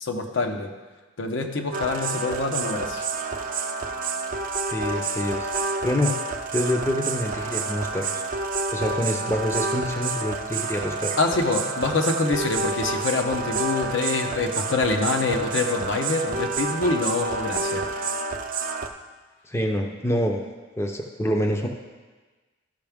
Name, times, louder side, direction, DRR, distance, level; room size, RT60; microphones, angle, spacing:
voice 1, 0.0-0.7 1.2-3.0 11.2-17.8, left 3 dB, 70° left, 4 dB, 0.8 m, -25 dB
sound 1, 1.7-18.9, right 3 dB, 45° right, 0.6 m, -29 dB
voice 2, 4.7-6.1 6.5-8.1 8.7-11.2 19.5-20.4 20.8-21.7, left 1 dB, 15° left, 3 dB, 0.6 m, -26 dB
13.0 x 5.7 x 3.5 m, 1.3 s
head